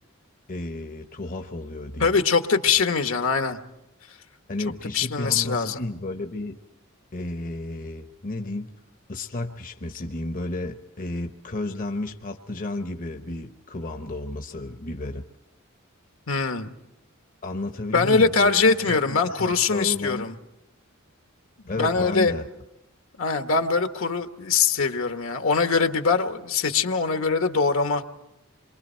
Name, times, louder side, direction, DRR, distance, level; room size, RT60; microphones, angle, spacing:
voice 1, 0.5-2.1 4.5-6.6 7.1-8.7 9.1-15.2 17.4-20.2 21.7-22.5, left 2 dB, 40° left, 6 dB, 0.9 m, -32 dB
voice 2, 2.0-3.6 4.9-5.8 16.3-16.7 17.9-20.3 21.6-22.3 23.2-28.1, left 4 dB, 75° left, 7 dB, 1.3 m, -22 dB
27.5 x 23.0 x 4.5 m, 0.90 s
head